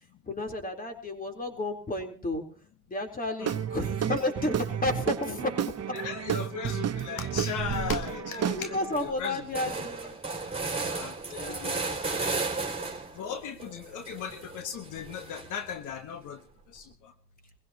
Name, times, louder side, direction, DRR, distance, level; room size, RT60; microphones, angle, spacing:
voice 1, 0.3-2.4 2.9-5.7 8.0-10.2 10.8-10.9 11.3-12.1 12.7-14.0, left 2 dB, 30° left, 3 dB, 4.0 m, -33 dB
Guitar / Drum, 3.4-9.0, right 9 dB, 55° right, 1.0 m, -31 dB
voice 2, 5.9-9.4 10.9-12.3 13.1-16.4 16.7-17.1, left 7 dB, 85° left, 7 dB, 1.5 m, -38 dB
sound 1, 7.6-8.1 8.5-8.6 8.8-13.2 13.6-15.7, right 3 dB, 20° right, 3.7 m, -34 dB
23.5 x 16.5 x 3.0 m, 0.42 s
cardioid pair, 90°, 30 cm